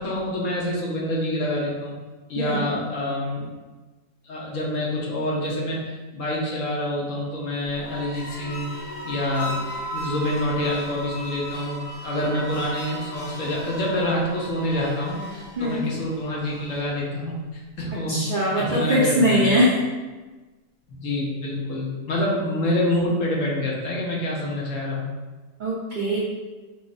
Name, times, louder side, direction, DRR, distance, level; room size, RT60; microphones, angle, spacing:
voice 1, 0.0-1.9 2.3-3.5 4.2-8.7 9.0-9.5 9.9-18.2 18.6-19.5 20.9-25.0, left 1 dB, 65° left, -4 dB, 0.9 m, -27 dB
sound 1, 7.6-17.0, equal, 90° left, 1.4 m, -36 dB
voice 2, 18.1-19.8 25.6-26.2, equal, 75° right, -7 dB, 0.4 m, -21 dB
4.9 x 2.0 x 2.4 m, 1.2 s
omnidirectional pair, 1.6 m